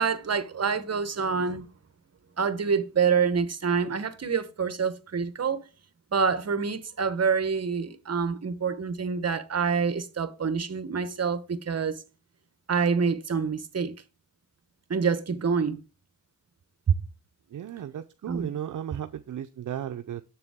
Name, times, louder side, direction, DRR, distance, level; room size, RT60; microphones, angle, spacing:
voice 1, 0.0-1.7 2.4-5.6 6.1-12.0 12.7-13.9 14.9-15.8 16.9-17.0 18.3-18.5, right 6 dB, 50° right, 1.0 m, -26 dB
voice 2, 17.5-20.2, right 10 dB, 65° right, 0.5 m, -35 dB
7.3 x 6.8 x 3.6 m
cardioid pair, 75°, 33 cm